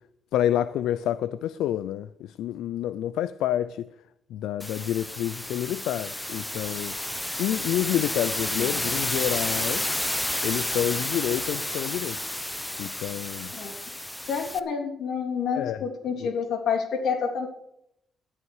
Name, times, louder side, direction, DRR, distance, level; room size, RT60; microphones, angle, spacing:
voice 1, 0.3-2.1 2.4-3.9 4.3-6.9 7.4-9.8 10.4-12.2 12.8-13.5 15.5-15.8 16.2-16.3, left 11 dB, 85° left, 0.4 m, -28 dB
sound 1, 4.6-14.6, left 1 dB, 10° left, 0.8 m, -31 dB
voice 2, 14.3-17.5, left 6 dB, 65° left, 3.3 m, -28 dB
14.0 x 11.0 x 4.7 m
cardioid pair, 90°, 0 cm